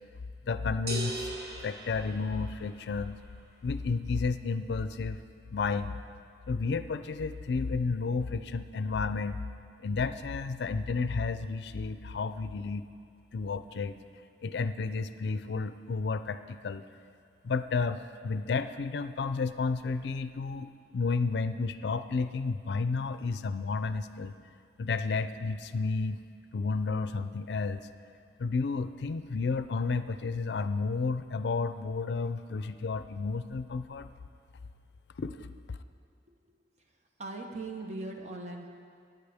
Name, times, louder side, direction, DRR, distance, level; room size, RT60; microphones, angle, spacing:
voice 1, 0.4-1.3 1.6-3.2 3.6-5.2 5.5-6.0 6.5-9.4 9.8-12.9 13.3-14.0 14.4-16.8 17.4-24.3 24.8-26.2 26.5-27.9 28.4-34.1 35.2-35.8, left 4 dB, 70° left, 11 dB, 0.4 m, -32 dB
sound 1, 0.9-2.9, right 2 dB, 55° right, 1.2 m, -39 dB
voice 2, 37.2-38.7, right 2 dB, 40° right, 2 dB, 0.9 m, -39 dB
17.5 x 9.1 x 3.5 m, 2.2 s
head